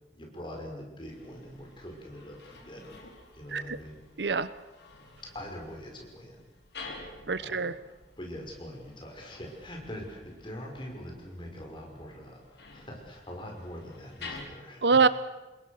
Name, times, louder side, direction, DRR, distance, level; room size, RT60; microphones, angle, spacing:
voice 1, 0.1-3.0 3.3-4.0 5.3-6.4 6.9-15.0, equal, 30° left, 1 dB, 5.8 m, -43 dB
sound 1, 1.1-14.4, left 3 dB, 75° left, 4.7 m, -50 dB
voice 2, 4.2-4.5 7.3-7.7 14.8-15.1, right 4 dB, 75° right, 15 dB, 0.9 m, -24 dB
28.0 x 21.5 x 6.6 m, 1.1 s
head